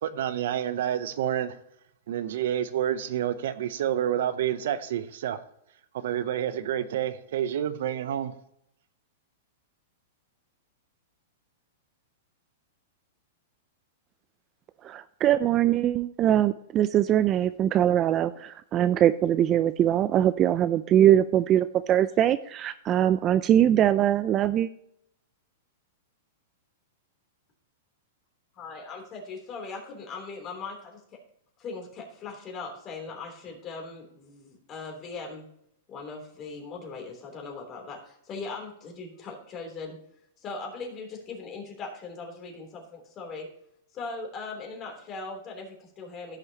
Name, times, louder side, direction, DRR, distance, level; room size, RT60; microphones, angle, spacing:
voice 1, 0.0-1.6 2.1-5.4 5.9-8.4, right 10 dB, 70° right, 0.7 m, -29 dB
voice 2, 14.8-24.7, right 11 dB, 30° right, 0.3 m, -22 dB
voice 3, 28.5-31.0 31.6-35.5 35.9-40.0 40.4-43.5 43.9-46.4, left 4 dB, 30° left, 3.3 m, -39 dB
15.0 x 6.5 x 2.9 m
hypercardioid pair, 135°, 0 cm